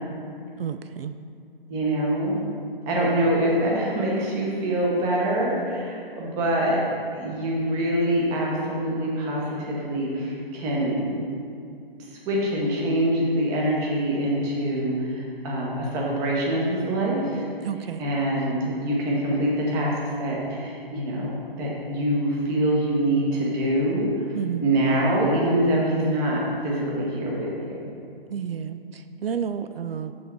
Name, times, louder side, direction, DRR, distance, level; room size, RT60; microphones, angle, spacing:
voice 1, 0.6-1.2 17.6-18.0 24.3-24.7 28.3-30.1, right 8 dB, 75° right, 10 dB, 0.5 m, -31 dB
voice 2, 1.7-2.4 2.9-6.8 7.1-11.4 12.3-17.4 18.0-19.9 20.2-24.1 24.6-27.9, right 1 dB, 10° right, -3 dB, 0.8 m, -25 dB
7.0 x 6.3 x 4.4 m, 2.4 s
hypercardioid pair, 155°, 29 cm